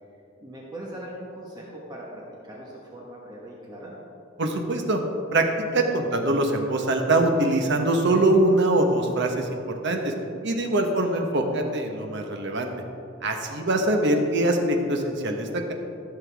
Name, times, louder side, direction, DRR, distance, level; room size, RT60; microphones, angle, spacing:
voice 1, 0.4-3.9 10.9-11.1, right 1 dB, 20° right, -4 dB, 1.2 m, -40 dB
voice 2, 4.4-5.0 5.3-5.4 5.7-10.1 10.4-12.7 13.2-15.7, right 2 dB, 60° right, 4 dB, 1.1 m, -23 dB
15.0 x 6.9 x 3.5 m, 2.7 s
head